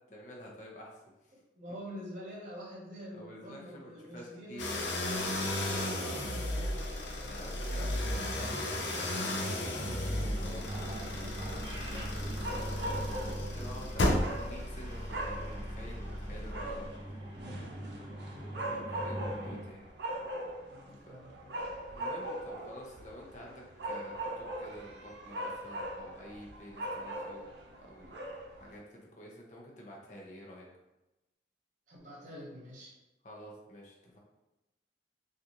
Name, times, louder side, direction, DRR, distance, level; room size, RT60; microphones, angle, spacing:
voice 1, 0.1-1.3 3.1-4.9 7.2-8.6 9.4-16.9 18.5-19.8 20.9-21.2 21.9-27.5 27.8-28.2 28.5-30.7 33.2-34.2, equal, 40° left, -2 dB, 0.7 m, -49 dB
voice 2, 1.6-7.6 13.7-13.9 16.6-17.0 17.5-18.8 20.7-21.7 31.9-32.9, equal, 40° right, -3 dB, 1.0 m, -48 dB
sound 1, 4.6-17.0, left 1 dB, 80° left, 0.6 m, -35 dB
sound 2, 7.8-19.6, right 1 dB, 25° right, 0.5 m, -42 dB
sound 3, 10.7-28.8, right 1 dB, 70° right, 0.6 m, -41 dB
3.8 x 2.5 x 2.9 m, 0.99 s
head